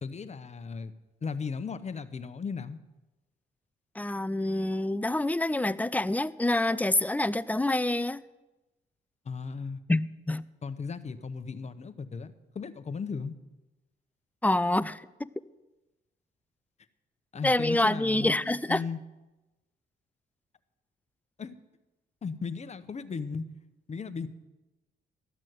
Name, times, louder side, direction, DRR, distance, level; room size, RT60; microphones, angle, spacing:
voice 1, 0.0-0.9 1.2-2.8 9.2-9.8 10.6-13.3 17.3-18.4 18.7-19.0 21.4-21.6 22.2-23.4 23.9-24.3, left 5 dB, 35° left, 0.9 m, -36 dB
voice 2, 4.0-8.2 9.9-10.5 14.4-15.3 17.4-18.8, left 1 dB, 10° left, 0.4 m, -27 dB
13.5 x 6.2 x 9.3 m
cardioid pair, 85°, 19 cm